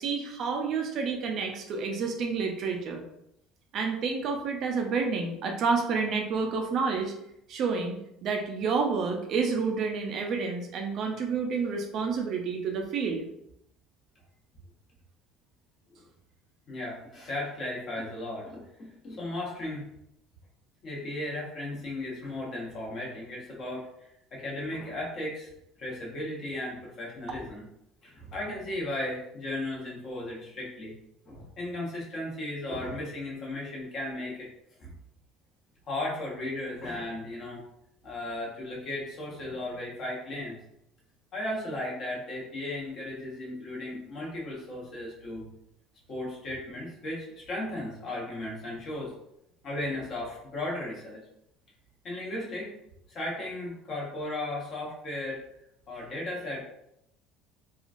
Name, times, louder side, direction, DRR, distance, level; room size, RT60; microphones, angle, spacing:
voice 1, 0.0-3.0 3.7-7.1 7.5-13.3, right 5 dB, 45° right, 3 dB, 0.4 m, -29 dB
voice 2, 16.7-19.8 20.8-25.5 25.8-27.6 28.0-30.9 31.3-34.5 34.8-34.9 35.9-37.6 38.0-40.6 41.3-45.5 46.1-49.1 49.6-51.2 52.0-52.7 53.1-55.4 55.9-56.6, left 1 dB, 35° left, -4 dB, 1.0 m, -35 dB
3.0 x 2.3 x 2.5 m, 0.78 s
cardioid pair, 150°, 0 cm